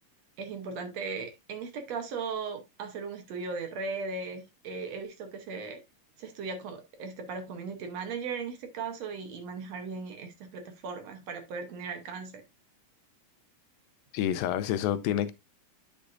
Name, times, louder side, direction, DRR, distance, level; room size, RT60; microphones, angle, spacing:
voice 1, 0.4-5.8 6.2-12.4, right 4 dB, 65° right, 1.9 m, -37 dB
voice 2, 14.1-15.3, left 11 dB, 90° left, 2.4 m, -28 dB
10.0 x 6.2 x 2.6 m
omnidirectional pair, 4.0 m